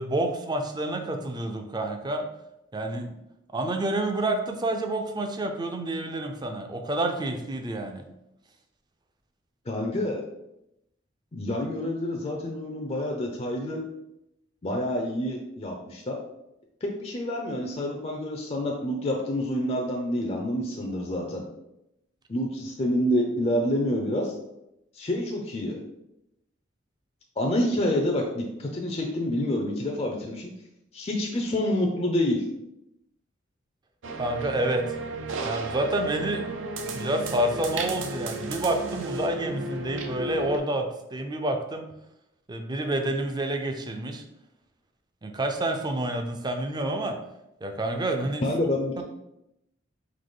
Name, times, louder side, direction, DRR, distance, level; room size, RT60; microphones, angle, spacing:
voice 1, 0.0-2.3 2.7-3.1 3.5-8.0 34.2-34.8 35.4-36.5 36.9-41.8 42.5-44.2 45.2-47.2 47.6-48.4 49.0-49.1, right 1 dB, 20° right, 5 dB, 0.4 m, -28 dB
voice 2, 9.7-10.2 11.3-13.8 14.6-16.2 16.8-21.4 22.3-24.3 24.9-25.8 27.4-30.5 30.9-32.4 48.4-49.0, left 1 dB, 30° left, 0 dB, 0.5 m, -28 dB
sound 1, 34.0-40.6, right 2 dB, 80° right, 0.6 m, -33 dB
3.9 x 2.9 x 3.7 m, 0.85 s
head